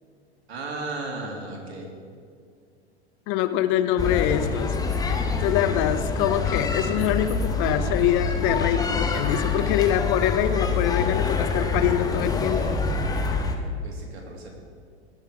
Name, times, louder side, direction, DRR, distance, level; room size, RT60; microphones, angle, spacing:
voice 1, 0.5-1.9 13.8-14.5, right 2 dB, 65° right, 0 dB, 2.8 m, -35 dB
voice 2, 3.3-4.8 5.4-12.8, left 11 dB, 35° left, 11 dB, 0.6 m, -24 dB
sound 1, 4.0-13.6, left 4 dB, 10° left, 1.0 m, -26 dB
18.5 x 6.7 x 4.8 m, 2.1 s
figure-of-eight pair, 95°, 34 cm